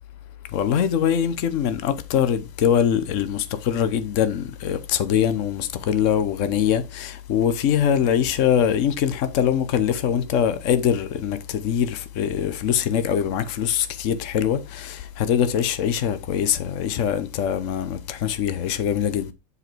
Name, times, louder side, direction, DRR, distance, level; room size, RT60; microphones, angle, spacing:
voice 1, 0.5-19.3, left 9 dB, 75° left, 0.7 m, -23 dB
9.8 x 5.0 x 4.5 m
omnidirectional pair, 2.4 m